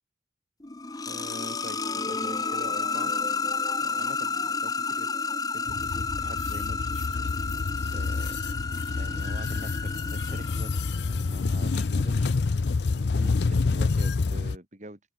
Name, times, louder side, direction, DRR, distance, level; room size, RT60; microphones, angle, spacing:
sound 1, 0.6-11.4, left 4 dB, 20° left, 0.8 m, -31 dB
voice 1, 1.1-3.1 3.8-7.6 7.9-8.4 9.0-12.6 12.9-15.0, right 1 dB, 40° right, 2.7 m, -45 dB
sound 2, 5.7-14.6, left 4 dB, 65° left, 0.5 m, -28 dB
open air
head